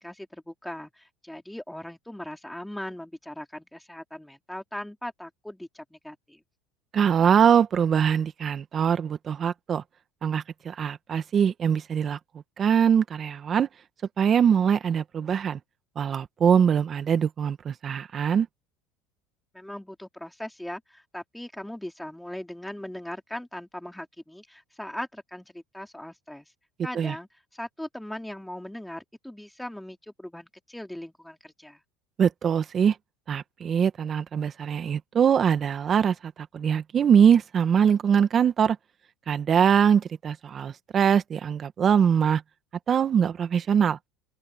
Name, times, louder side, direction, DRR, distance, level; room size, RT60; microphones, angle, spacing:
voice 1, 0.0-6.4 19.5-26.5 26.8-31.8, left 1 dB, 5° left, 3.7 m, -39 dB
voice 2, 6.9-9.8 10.2-12.2 12.6-13.7 14.2-15.6 16.0-18.5 26.9-27.2 32.2-32.9 33.3-38.8 39.3-42.4 42.9-44.0, right 7 dB, 35° right, 1.8 m, -22 dB
open air
supercardioid pair, 105°, 0 cm